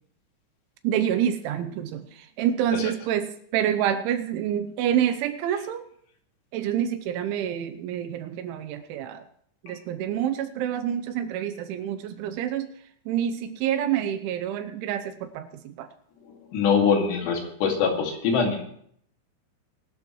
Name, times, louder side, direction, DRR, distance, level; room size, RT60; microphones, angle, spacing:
voice 1, 0.8-5.8 6.5-9.2 9.6-12.7 13.1-15.9, right 10 dB, 80° right, 10 dB, 3.0 m, -27 dB
voice 2, 16.5-18.6, left 6 dB, 65° left, 1 dB, 4.1 m, -23 dB
23.5 x 12.0 x 3.1 m, 0.65 s
omnidirectional pair, 5.8 m